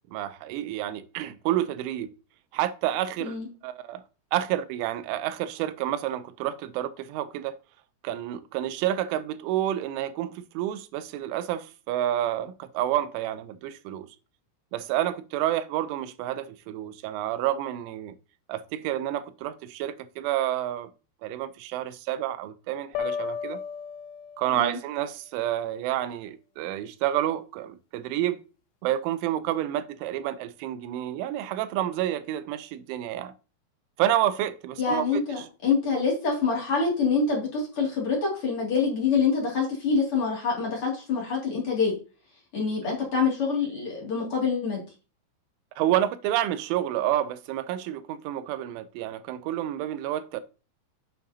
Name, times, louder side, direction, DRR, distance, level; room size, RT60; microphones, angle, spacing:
voice 1, 0.1-2.1 2.5-3.3 3.6-4.0 4.3-7.6 8.0-14.1 14.7-18.1 18.5-20.9 21.2-23.6 24.4-28.4 28.8-33.3 34.0-35.5 45.8-50.4, right 12 dB, 85° right, 3.1 m, -29 dB
sound 1, 23.0-24.8, left 7 dB, 90° left, 3.2 m, -34 dB
voice 2, 34.8-41.9 42.5-44.8, left 5 dB, 40° left, 2.3 m, -26 dB
8.9 x 6.7 x 2.7 m
omnidirectional pair, 5.5 m